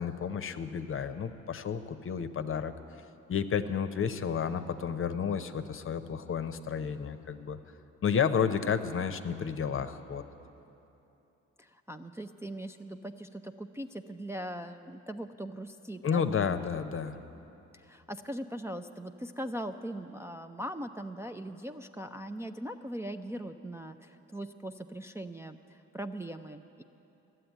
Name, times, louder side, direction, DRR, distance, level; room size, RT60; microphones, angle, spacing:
voice 1, 0.0-2.7 3.3-7.6 8.0-10.2 16.0-17.2, left 7 dB, 45° left, 10 dB, 0.7 m, -31 dB
voice 2, 11.6-16.6 17.0-17.1 17.7-26.8, right 1 dB, 10° right, 4 dB, 0.4 m, -40 dB
12.5 x 7.8 x 9.1 m, 2.9 s
supercardioid pair, 60°, 30 cm